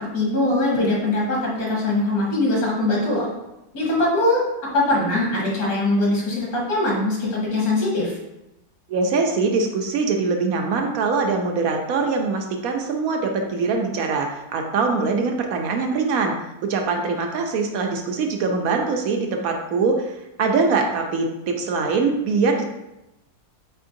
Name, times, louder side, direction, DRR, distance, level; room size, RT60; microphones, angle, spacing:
voice 1, 0.1-3.3 3.7-8.2, left 2 dB, 65° left, -5 dB, 2.0 m, -22 dB
voice 2, 8.9-16.3 16.6-22.6, right 4 dB, 70° right, 3 dB, 1.0 m, -23 dB
4.6 x 4.3 x 2.6 m, 0.93 s
omnidirectional pair, 1.7 m